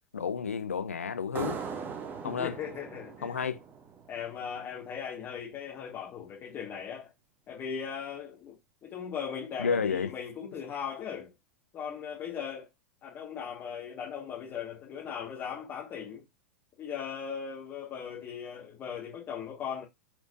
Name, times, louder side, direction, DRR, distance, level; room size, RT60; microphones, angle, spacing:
voice 1, 0.1-1.6 2.2-2.6 3.2-3.6 9.6-10.1, left 6 dB, 80° left, 0.6 m, -31 dB
sound 1, 1.3-4.7, right 6 dB, 25° right, 0.9 m, -40 dB
voice 2, 2.2-3.4 4.1-7.1 7.5-11.3 11.7-12.7 13.0-16.2 16.8-19.8, left 7 dB, 30° left, 1.7 m, -38 dB
4.4 x 4.3 x 2.6 m
figure-of-eight pair, 95°, 7 cm